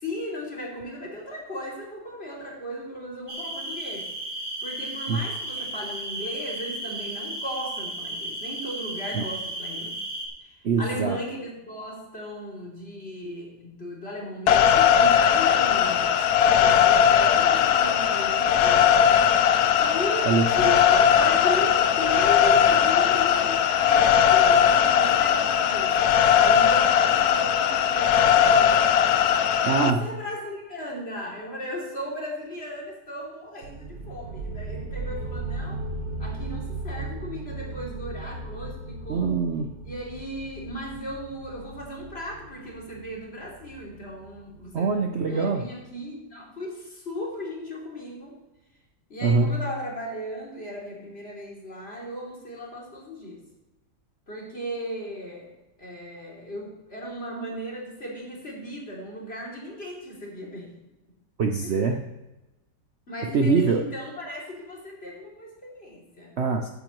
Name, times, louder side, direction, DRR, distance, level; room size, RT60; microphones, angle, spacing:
voice 1, 0.0-4.1 4.6-10.0 10.4-10.5 10.8-18.9 19.8-26.0 26.3-28.9 29.8-35.8 36.2-39.3 39.8-48.4 49.1-53.4 54.3-55.5 55.8-60.7 61.6-61.7 63.1-66.4, equal, 35° left, -3 dB, 3.2 m, -36 dB
sound 1, 3.3-10.3, right 1 dB, 20° right, 2.2 m, -34 dB
voice 2, 10.6-11.2 20.2-20.5 29.6-30.1 39.1-39.7 44.7-45.6 49.2-49.6 61.4-62.1 63.3-63.8 66.4-66.7, right 4 dB, 50° right, 4 dB, 0.9 m, -23 dB
sound 2, 14.5-29.9, left 9 dB, 75° left, 1.2 m, -19 dB
sound 3, 33.6-45.0, right 2 dB, 70° right, 1.7 m, -37 dB
15.0 x 9.0 x 3.1 m, 1.0 s
omnidirectional pair, 1.7 m